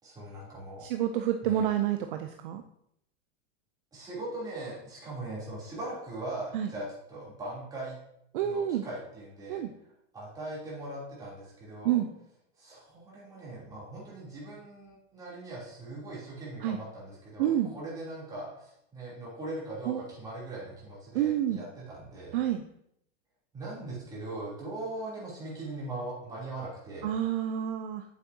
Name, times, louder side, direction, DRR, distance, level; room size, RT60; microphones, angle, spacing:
voice 1, 0.0-0.8 1.4-1.6 3.9-8.0 8.4-9.6 10.1-12.0 12.6-22.4 23.5-27.1, right 2 dB, 10° right, -7 dB, 3.1 m, -40 dB
voice 2, 0.8-2.6 6.5-6.7 8.3-8.8 9.5-9.7 11.8-12.1 16.6-16.8 17.4-17.7 19.9-20.0 21.1-21.6 22.3-22.6 27.0-28.0, right 11 dB, 55° right, 6 dB, 0.5 m, -28 dB
8.5 x 7.4 x 2.8 m, 0.75 s
supercardioid pair, 160°, 32 cm